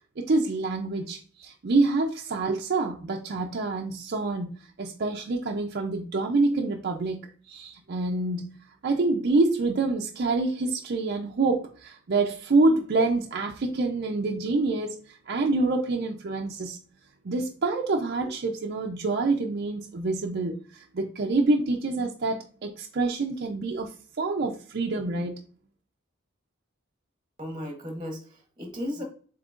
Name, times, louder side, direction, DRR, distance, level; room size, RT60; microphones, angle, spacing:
voice 1, 0.2-8.6 8.8-15.0 15.3-16.8 17.2-23.9 24.2-25.4, right 3 dB, 55° right, 0.5 m, -26 dB
voice 2, 27.4-29.0, left 1 dB, 25° right, 0.9 m, -35 dB
7.3 x 2.9 x 2.4 m
head